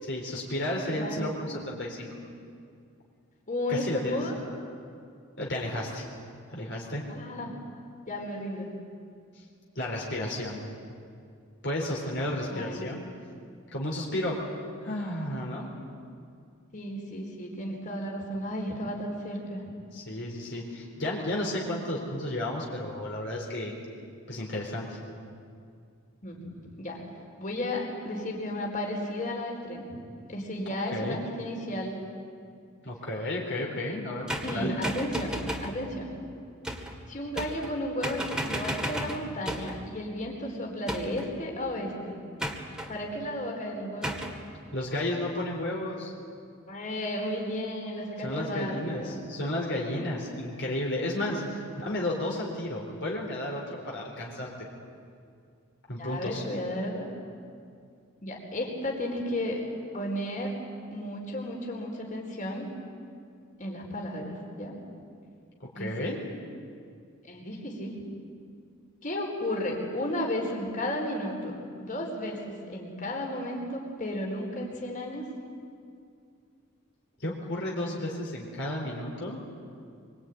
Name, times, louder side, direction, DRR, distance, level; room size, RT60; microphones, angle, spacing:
voice 1, 0.0-2.1 3.7-4.2 5.4-6.0 6.5-7.0 9.8-10.6 11.6-13.0 13.7-14.5 14.8-15.7 19.9-23.8 24.3-25.0 30.9-31.2 32.8-34.2 34.5-34.8 44.7-46.1 48.2-54.7 55.9-56.4 65.8-66.2 77.2-79.4, left 1 dB, 55° left, -2 dB, 4.1 m, -32 dB
voice 2, 0.9-1.6 3.5-4.3 7.1-7.5 8.1-8.7 12.5-12.9 15.6-15.7 16.7-19.6 26.2-27.0 27.4-30.0 30.3-32.0 34.4-36.1 37.1-42.2 42.9-44.1 46.7-49.2 51.3-51.5 56.0-57.1 58.2-59.6 59.9-60.6 60.9-62.7 63.6-64.7 65.7-66.1 67.2-68.0 69.0-75.2, left 1 dB, 35° left, 0 dB, 4.4 m, -33 dB
sound 1, 34.3-35.8 36.6-37.0 37.4-37.8 38.0-39.8 40.9-41.3 42.4-42.9 44.0-44.4, equal, 5° right, 2.1 m, -34 dB
25.0 x 24.5 x 9.4 m, 2.3 s
head